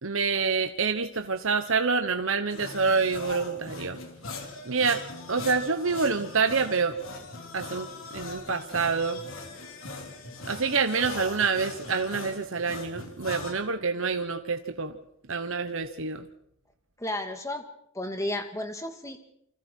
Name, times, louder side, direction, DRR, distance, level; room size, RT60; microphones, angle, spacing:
voice 1, 0.0-4.0 4.7-7.0 7.5-9.2 10.5-15.0 15.3-16.3, right 5 dB, 60° right, 7 dB, 1.2 m, -27 dB
sound 1, 2.5-13.5, left 3 dB, 60° left, 3.5 m, -40 dB
voice 2, 17.0-17.7 17.9-19.2, left 1 dB, 15° left, 6 dB, 2.2 m, -33 dB
28.0 x 26.0 x 4.6 m, 0.75 s
head